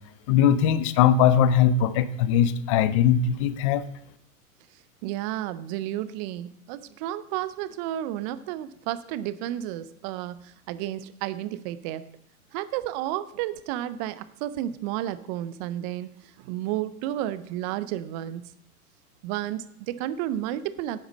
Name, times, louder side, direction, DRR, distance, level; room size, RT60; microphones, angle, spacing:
voice 1, 0.3-3.8, left 9 dB, 25° left, 16 dB, 0.3 m, -20 dB
voice 2, 5.0-12.0 12.5-18.5 19.2-21.1, right 13 dB, 30° right, 15 dB, 0.5 m, -32 dB
10.5 x 8.7 x 4.0 m, 0.72 s
hypercardioid pair, 105°, 44 cm